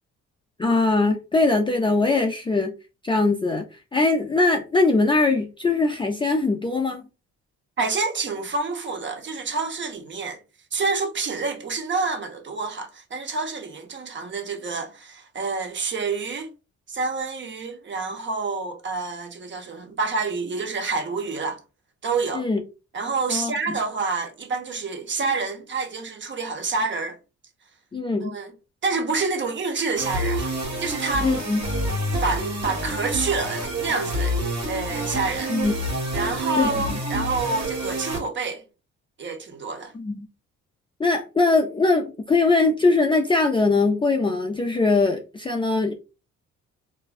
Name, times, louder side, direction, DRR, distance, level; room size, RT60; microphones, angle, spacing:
voice 1, 0.6-2.7 3.0-3.6 3.9-7.1 22.3-22.6 23.3-23.5 27.9-28.3 31.2-31.6 35.5-35.7 36.5-37.0 39.9-40.3 41.0-45.9, left 3 dB, 15° left, 0.3 m, -21 dB
voice 2, 7.8-10.4 10.7-16.5 16.9-21.6 22.0-22.5 22.9-27.2 28.2-28.5 28.8-30.5 30.8-31.3 32.2-34.3 34.7-35.5 36.1-38.6 39.2-39.9, right 4 dB, 40° right, 0.7 m, -28 dB
sound 1, 29.9-38.2, right 1 dB, 65° right, 1.4 m, -28 dB
2.5 x 2.1 x 2.4 m
cardioid pair, 90°, 30 cm